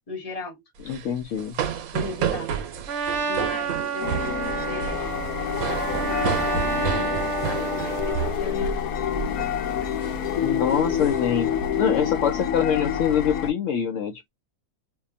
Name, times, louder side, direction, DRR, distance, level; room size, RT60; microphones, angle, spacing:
voice 1, 0.1-0.6 1.3-1.4 1.9-2.5 3.3-5.2 5.5-8.8 9.4-9.5, left 3 dB, 30° left, 1.0 m, -38 dB
sound 1, 0.8-8.9 9.1-9.4 9.8-10.1 10.6-11.7, right 8 dB, 90° right, 1.1 m, -31 dB
voice 2, 0.9-1.6 10.4-11.5 11.8-14.3, left 8 dB, 70° left, 0.9 m, -24 dB
Trumpet, 2.9-8.3, right 5 dB, 65° right, 1.0 m, -29 dB
sound 2, 4.0-13.5, left 8 dB, 90° left, 1.1 m, -27 dB
2.8 x 2.2 x 2.5 m
omnidirectional pair, 1.5 m